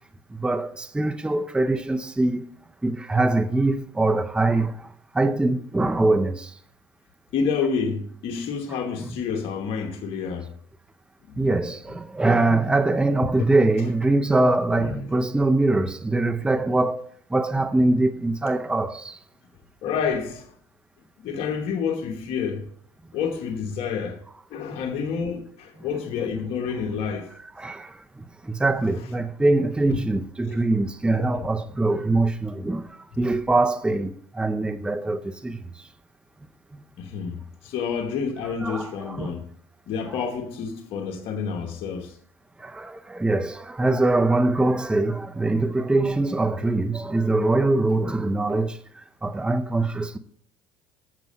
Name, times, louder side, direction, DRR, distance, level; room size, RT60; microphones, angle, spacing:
voice 1, 0.3-2.5 2.8-4.9 5.1-6.5 11.4-17.0 17.3-19.2 27.6-28.0 28.4-32.9 33.2-35.6 38.4-39.3 40.1-40.2 42.6-48.8 49.2-50.2, right 2 dB, 10° right, 0.5 m, -23 dB
voice 2, 7.3-10.5 11.3-11.5 13.2-13.5 14.8-15.1 19.8-20.5 21.2-22.7 23.1-24.2 24.5-27.3 29.9-30.0 30.5-30.6 31.1-31.5 37.0-39.4 39.9-42.2, left 6 dB, 60° left, 1.1 m, -29 dB
7.4 x 6.8 x 5.3 m
supercardioid pair, 85°, 11 cm